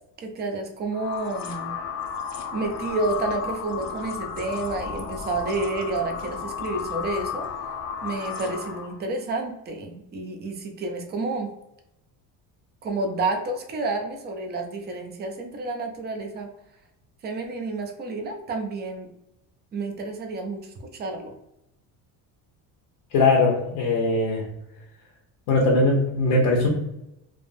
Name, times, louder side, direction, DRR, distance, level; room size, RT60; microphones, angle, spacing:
voice 1, 0.2-1.7 2.5-7.5 8.0-11.5 12.8-16.5 17.2-19.1 19.7-21.3, right 3 dB, 25° right, 3 dB, 0.4 m, -30 dB
sound 1, 0.9-9.0, left 6 dB, 45° left, 0.5 m, -33 dB
voice 2, 23.1-24.4 25.5-26.7, left 3 dB, 90° left, -3 dB, 0.8 m, -20 dB
3.3 x 2.0 x 2.5 m, 0.85 s
cardioid pair, 150°, 39 cm